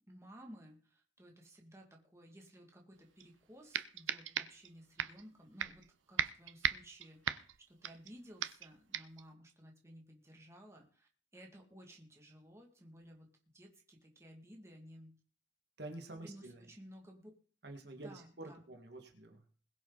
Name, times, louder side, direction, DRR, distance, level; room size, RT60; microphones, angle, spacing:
voice 1, 0.1-15.2 16.2-17.3 17.9-18.6, equal, 15° right, 1 dB, 2.4 m, -56 dB
sound 1, 3.2-3.3 3.7-4.7 5.0-5.2 5.6-5.9 6.2-8.1 8.4-8.7 8.9-9.2, right 8 dB, 85° right, 0.7 m, -37 dB
voice 2, 15.8-16.7 17.6-19.5, right 2 dB, 60° right, 4 dB, 2.1 m, -48 dB
21.5 x 7.4 x 4.2 m, 0.42 s
head